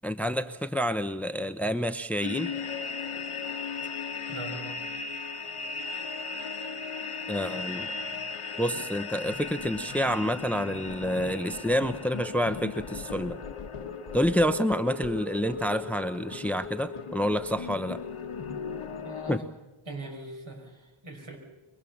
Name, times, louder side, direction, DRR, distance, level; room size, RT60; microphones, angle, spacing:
voice 1, 0.0-2.5 7.3-7.9 8.6-13.4 14.1-18.0 19.3-19.4, equal, 5° left, 12 dB, 0.8 m, -28 dB
sound 1, 2.2-19.4, left 5 dB, 85° left, 1.3 m, -37 dB
voice 2, 4.3-4.8 13.8-14.0 19.0-19.5 19.9-21.4, right 3 dB, 65° right, 1 dB, 6.1 m, -41 dB
24.0 x 21.0 x 7.2 m, 1.1 s
wide cardioid pair, 60°, 50 cm